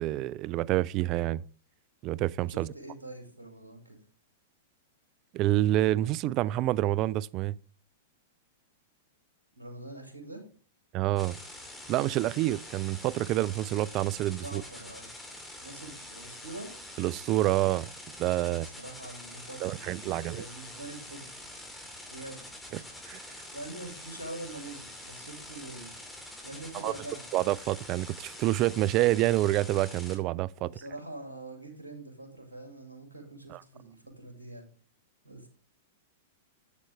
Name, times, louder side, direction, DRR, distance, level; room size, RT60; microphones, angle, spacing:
voice 1, 0.0-1.4 2.0-2.7 5.3-7.5 10.9-11.4 11.9-14.6 17.0-17.9 18.2-18.7 19.6-20.4 22.7-22.8 23.1-23.2 26.8-26.9 27.3-30.7 33.5-33.6, right 15 dB, 40° right, 0.3 m, -27 dB
voice 2, 2.5-4.0 9.6-10.4 14.4-15.1 15.6-16.7 18.4-21.3 22.1-22.4 22.7-22.8 23.5-25.9 26.4-27.3 30.6-34.7 35.2-35.5, right 2 dB, 90° right, 2.1 m, -44 dB
sound 1, 11.2-30.2, left 1 dB, 5° left, 2.3 m, -45 dB
8.3 x 7.8 x 3.3 m
figure-of-eight pair, 105°, 0 cm